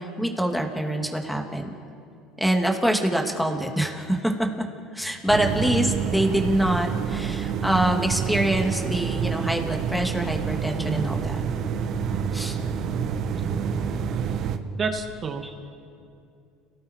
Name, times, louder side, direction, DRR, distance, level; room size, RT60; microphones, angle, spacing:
voice 1, 0.0-1.7 2.4-4.3 4.9-11.4 12.3-12.6, right 1 dB, ahead, 2 dB, 3.1 m, -25 dB
sound 1, 5.3-14.6, right 7 dB, 55° right, 1.5 m, -28 dB
voice 2, 14.8-15.4, right 5 dB, 35° right, 5 dB, 2.4 m, -29 dB
30.0 x 18.5 x 4.9 m, 2.5 s
supercardioid pair, 85°, 0 cm